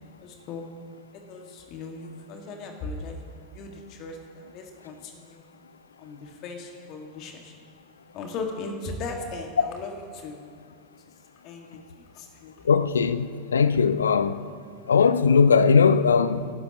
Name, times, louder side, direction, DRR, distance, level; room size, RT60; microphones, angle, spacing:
voice 1, 0.2-0.6 1.1-3.2 3.5-5.4 6.0-7.5 8.1-10.4 11.4-12.5, left 3 dB, 40° left, 1.9 m, -38 dB
voice 2, 12.6-14.4 14.9-16.5, left 5 dB, 70° left, 0.5 m, -19 dB
27.0 x 12.0 x 3.0 m
figure-of-eight pair, 90°, 0 cm